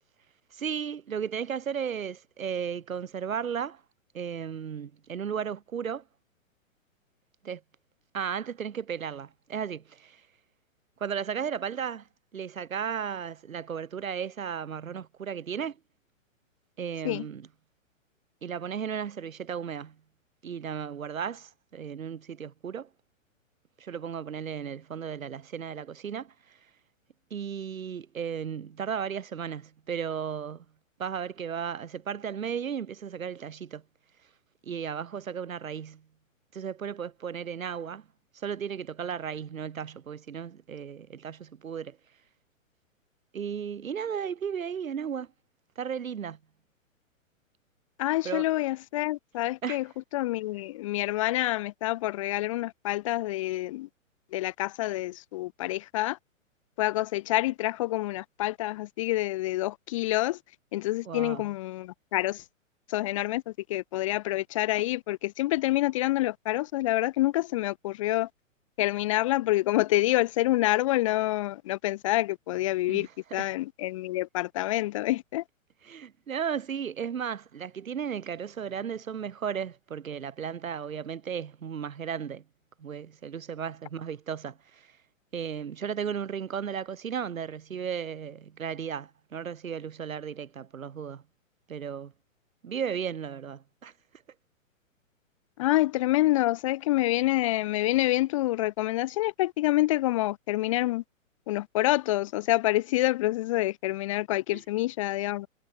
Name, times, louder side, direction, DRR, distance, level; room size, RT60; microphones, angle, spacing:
voice 1, 0.5-3.8 4.1-6.0 7.4-7.6 8.1-10.2 11.0-12.1 12.3-15.8 16.8-17.5 18.4-20.0 20.4-22.9 23.8-26.3 27.3-30.7 31.0-33.8 34.6-36.0 36.5-38.1 38.4-42.0 43.3-45.3 45.8-46.4 48.2-48.4 49.6-49.8 61.0-61.5 72.9-73.5 75.8-82.4 82.8-84.9 85.3-91.2 91.7-92.1 92.6-93.9 104.5-104.6, right 7 dB, 80° right, 3.8 m, -35 dB
voice 2, 48.0-49.8 50.1-53.9 54.3-56.2 56.8-60.4 60.7-62.4 62.9-63.4 63.7-68.3 68.8-73.1 73.3-75.4 95.6-101.0 101.5-105.5, left 17 dB, 25° left, 0.5 m, -27 dB
hypercardioid pair, 140°, 40 cm